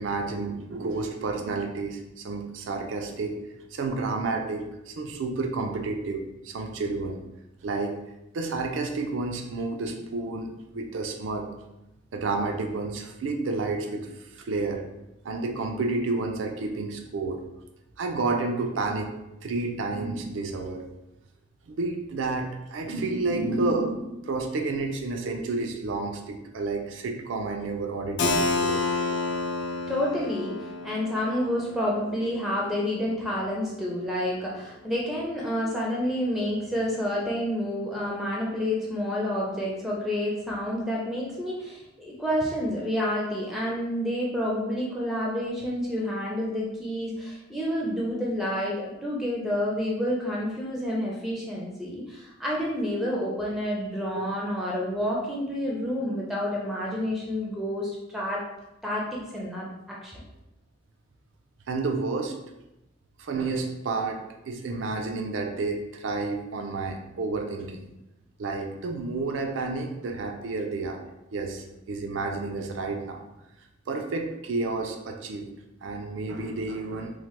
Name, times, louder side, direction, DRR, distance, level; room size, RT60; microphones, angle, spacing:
voice 1, 0.0-3.4 3.7-7.2 7.6-8.0 8.3-10.5 10.7-11.5 12.1-14.1 14.3-14.8 15.2-17.4 18.0-19.1 19.4-20.8 21.7-29.1 54.2-54.3 61.7-62.4 63.2-67.8 68.4-71.0 71.3-73.2 73.9-75.5 75.8-77.1, right 3 dB, 80° right, 4 dB, 0.4 m, -30 dB
Keyboard (musical), 28.2-33.7, left 3 dB, 65° left, 0.4 m, -30 dB
voice 2, 29.9-58.4 58.8-59.7 60.0-60.2, left 1 dB, ahead, -4 dB, 0.4 m, -29 dB
3.1 x 2.1 x 2.9 m, 0.94 s
head